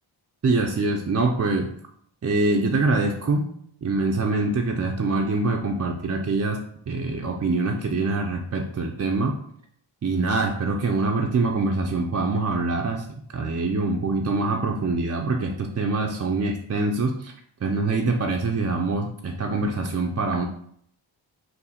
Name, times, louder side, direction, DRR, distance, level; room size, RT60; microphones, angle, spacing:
voice 1, 0.4-1.7 2.2-3.5 3.8-6.6 6.9-9.4 10.0-13.1 13.3-17.3 17.6-20.4, right 3 dB, 35° right, 2 dB, 0.4 m, -24 dB
3.8 x 2.1 x 4.1 m, 0.66 s
wide cardioid pair, 45°, 49 cm